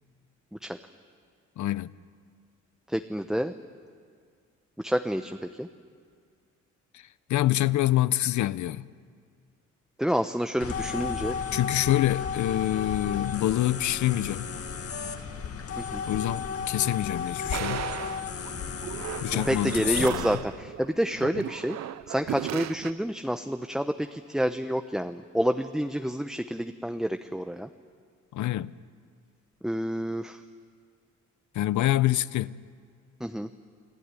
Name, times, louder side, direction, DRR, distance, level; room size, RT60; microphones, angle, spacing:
voice 1, 1.6-1.9 6.9-7.0 7.3-8.9 11.5-14.5 16.0-17.9 19.2-20.3 28.3-28.7 31.5-32.6, left 14 dB, 70° left, 0.8 m, -26 dB
voice 2, 2.9-3.5 4.8-5.7 10.0-11.4 15.8-16.0 19.3-21.8 22.1-27.7 29.6-30.4 33.2-33.5, equal, ahead, 0.9 m, -28 dB
sound 1, 10.6-20.2, left 6 dB, 50° left, 2.2 m, -34 dB
sound 2, 17.5-22.9, right 13 dB, 60° right, 0.6 m, -36 dB
28.5 x 19.0 x 9.8 m
cardioid pair, 90°, 30 cm